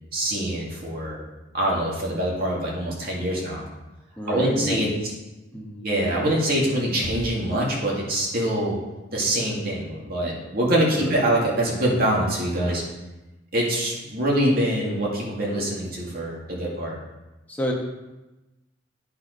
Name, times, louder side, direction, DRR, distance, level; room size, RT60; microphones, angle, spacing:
voice 1, 0.1-1.2 1.5-3.6 4.3-4.9 5.8-8.8 9.1-12.8 13.5-17.0, right 1 dB, 50° right, -3 dB, 2.3 m, -24 dB
voice 2, 4.2-4.8 5.5-5.8 10.9-11.2 17.5-17.7, equal, 10° left, -3 dB, 1.2 m, -28 dB
9.4 x 4.6 x 5.3 m, 1.0 s
head